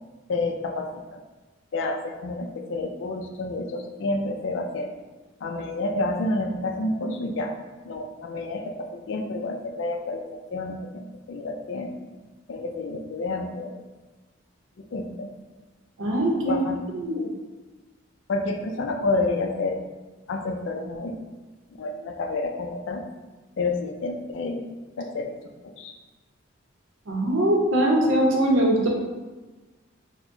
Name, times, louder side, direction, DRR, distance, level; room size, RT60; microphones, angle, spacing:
voice 1, 0.3-1.2 1.7-4.9 5.4-7.5 7.8-10.2 10.5-11.9 12.5-13.8 14.9-15.3 16.5-16.8 18.3-19.8 20.3-21.2 21.8-23.0 23.6-24.6 25.0-25.4 25.6-25.9, left 2 dB, 65° left, 3 dB, 0.4 m, -29 dB
voice 2, 16.0-16.6 16.9-17.3 27.1-28.9, right 1 dB, 70° right, -1 dB, 0.7 m, -22 dB
4.4 x 2.1 x 2.6 m, 1.2 s
head